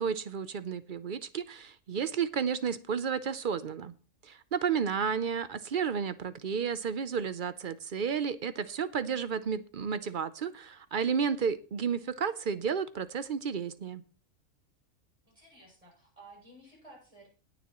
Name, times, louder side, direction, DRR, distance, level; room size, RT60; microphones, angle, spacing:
voice 1, 0.0-3.9 4.2-14.0, right 6 dB, 50° right, 14 dB, 0.7 m, -32 dB
voice 2, 15.3-17.3, right 2 dB, 25° right, -2 dB, 7.3 m, -54 dB
21.0 x 7.1 x 3.0 m, 0.35 s
omnidirectional pair, 1.4 m